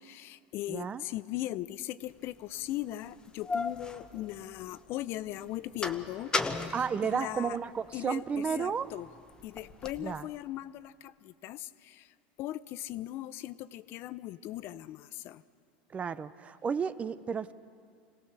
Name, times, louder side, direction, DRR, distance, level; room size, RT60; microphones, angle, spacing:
voice 1, 0.0-6.6 7.0-7.6 7.9-9.1 9.4-12.1 12.4-15.4, left 14 dB, 50° left, 15 dB, 0.6 m, -39 dB
voice 2, 0.7-1.0 6.7-8.9 10.0-10.3 15.9-17.5, right 6 dB, 25° right, 15 dB, 0.6 m, -32 dB
sound 1, 2.3-2.4 3.1-4.9 5.3-7.9 8.3-10.1, left 3 dB, 15° left, 1.0 m, -36 dB
25.5 x 17.5 x 6.7 m, 2.3 s
supercardioid pair, 110°, 5 cm